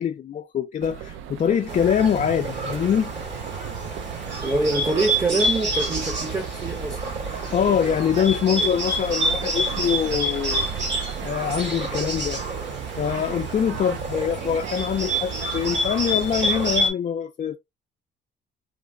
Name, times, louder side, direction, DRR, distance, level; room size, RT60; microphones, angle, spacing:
voice 1, 0.0-3.1 7.5-10.7 11.2-12.4 13.0-17.6, left 8 dB, 40° left, 0.4 m, -24 dB
sound 1, 0.8-16.9, right 9 dB, 85° right, 0.5 m, -37 dB
Bird, 1.7-16.9, right 1 dB, 65° right, 2.0 m, -28 dB
voice 2, 4.4-7.0, right 2 dB, 15° right, 0.8 m, -25 dB
3.1 x 2.1 x 3.5 m
cardioid pair, 90°, 20 cm